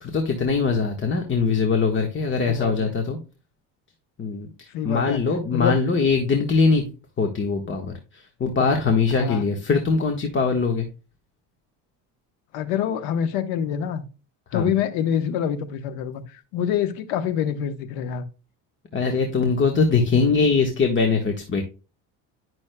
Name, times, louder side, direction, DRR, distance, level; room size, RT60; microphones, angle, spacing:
voice 1, 0.0-3.2 4.2-6.8 7.2-10.9 14.5-14.7 18.9-21.6, left 4 dB, 30° left, 1.3 m, -22 dB
voice 2, 2.5-2.9 4.7-5.2 5.5-5.7 9.1-9.4 12.5-14.0 14.5-18.2, left 8 dB, 90° left, 1.1 m, -26 dB
11.0 x 6.2 x 2.2 m
cardioid pair, 110°, 37 cm